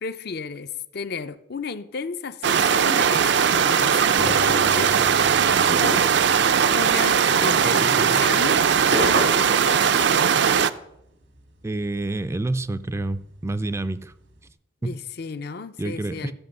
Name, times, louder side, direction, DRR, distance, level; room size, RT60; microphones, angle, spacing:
voice 1, 0.0-5.0 5.8-6.0 6.7-8.6 8.9-10.2 14.8-16.3, left 4 dB, 60° left, 0.6 m, -33 dB
sound 1, 2.4-10.7, right 7 dB, 65° right, 0.5 m, -19 dB
sound 2, 4.2-7.4, left 3 dB, 80° left, 2.1 m, -38 dB
voice 2, 7.6-8.2 11.6-14.1 14.8-14.9 15.8-16.3, right 2 dB, 15° right, 0.4 m, -28 dB
sound 3, 8.4-12.2 12.5-14.5, right 2 dB, 90° right, 1.7 m, -30 dB
13.0 x 6.1 x 6.5 m
head